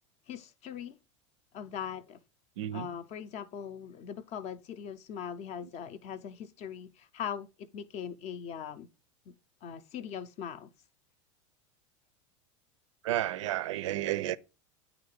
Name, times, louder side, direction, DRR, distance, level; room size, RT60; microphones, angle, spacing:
voice 1, 0.3-1.0 1.5-2.2 2.7-8.9 9.3-9.4 9.6-10.7, left 8 dB, 40° left, 0.6 m, -40 dB
voice 2, 2.6-2.9 13.0-14.4, right 13 dB, 70° right, 0.4 m, -31 dB
8.7 x 3.0 x 4.8 m
hypercardioid pair, 85°, 17 cm